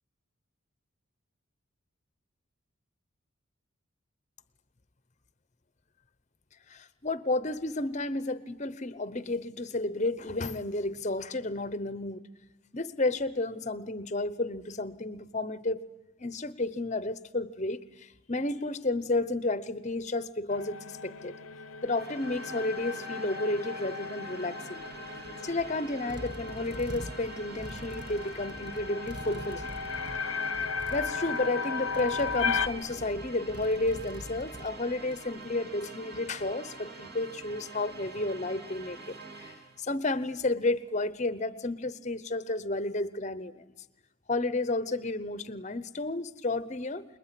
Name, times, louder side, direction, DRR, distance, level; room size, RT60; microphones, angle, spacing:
voice 1, 6.7-12.3 12.7-15.8 16.2-21.4 21.8-24.9 25.4-29.7 30.9-43.6 44.3-47.1, left 2 dB, 35° left, 15 dB, 0.9 m, -32 dB
sound 1, 20.5-32.7, left 5 dB, 80° left, 0.8 m, -36 dB
sound 2, 21.8-39.8, right 3 dB, 45° right, 2.3 m, -46 dB
sound 3, 24.8-35.4, equal, 20° right, 1.0 m, -45 dB
26.5 x 21.0 x 10.0 m, 1.1 s
head